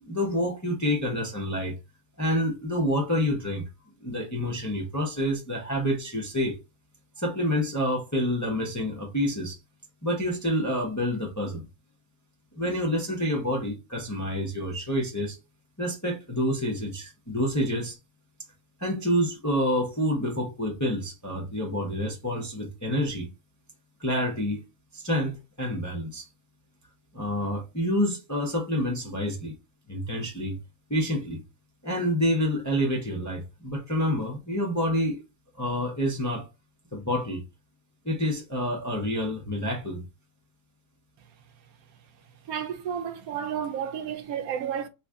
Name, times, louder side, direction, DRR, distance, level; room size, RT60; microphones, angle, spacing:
voice 1, 0.0-1.8 2.2-3.7 4.0-6.6 7.2-9.6 10.0-11.6 12.6-15.4 15.8-18.0 18.8-23.3 24.0-24.6 24.9-26.3 27.1-29.6 29.9-30.6 30.9-31.4 31.8-35.2 35.5-36.5 36.9-37.4 38.0-40.1, equal, 15° left, 0.6 m, -28 dB
voice 2, 42.5-44.9, right 8 dB, 75° right, 1.0 m, -31 dB
3.2 x 2.5 x 3.5 m
omnidirectional pair, 1.6 m